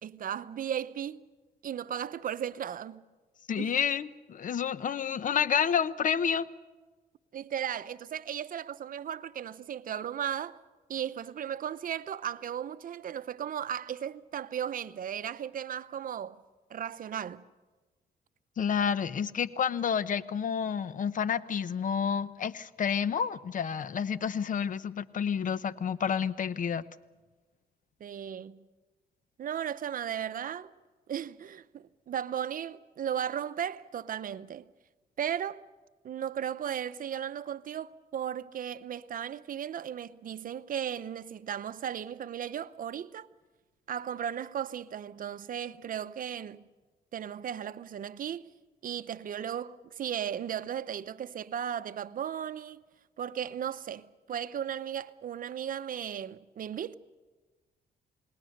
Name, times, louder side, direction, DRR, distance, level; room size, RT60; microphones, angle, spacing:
voice 1, 0.0-1.2 1.6-3.0 3.6-3.7 7.3-10.6 10.9-16.4 16.7-17.4 28.0-28.6 29.4-30.7 31.1-34.7 35.2-35.6 36.0-43.3 43.9-46.6 47.1-48.5 48.8-52.8 53.2-57.0, right 9 dB, 60° right, 0.8 m, -36 dB
voice 2, 3.5-6.5 18.6-26.8, left 7 dB, 55° left, 0.8 m, -29 dB
28.5 x 19.5 x 6.6 m
cardioid pair, 90°, 16 cm